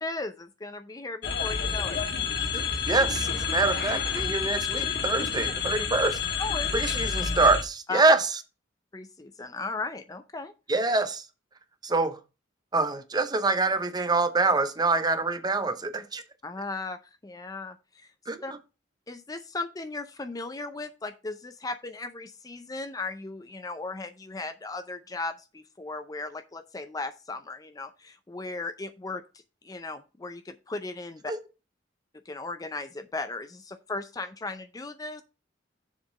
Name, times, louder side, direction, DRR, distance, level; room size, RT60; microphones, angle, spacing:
voice 1, 0.0-2.0 2.3-2.5 6.4-6.8 7.9-8.0 8.9-10.5 16.4-18.1 18.4-18.5 19.1-29.2 29.6-31.3 32.3-35.2, left 3 dB, 20° left, 0.5 m, -36 dB
sound 1, 1.2-7.6, left 6 dB, 60° left, 1.5 m, -29 dB
voice 2, 2.9-6.2 6.7-8.3 10.7-11.2 11.8-12.2 12.7-16.2 18.3-18.6 31.3-31.4, right 3 dB, 20° right, 0.8 m, -25 dB
7.1 x 4.0 x 6.3 m
head